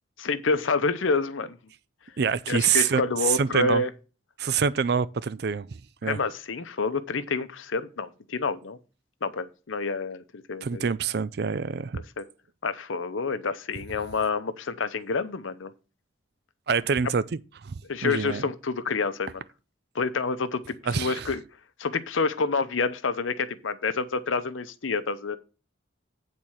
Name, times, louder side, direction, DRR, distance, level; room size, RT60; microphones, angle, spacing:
voice 1, 0.2-1.6 2.5-3.9 6.0-8.8 9.2-10.9 12.2-12.3 12.6-15.7 17.9-19.4 19.9-21.4 21.8-25.4, left 4 dB, 85° left, 0.7 m, -28 dB
voice 2, 2.2-3.8 4.4-6.2 10.6-12.0 16.7-17.2 17.6-18.4 20.9-21.3, right 6 dB, 55° right, 0.4 m, -26 dB
8.9 x 4.3 x 6.3 m
head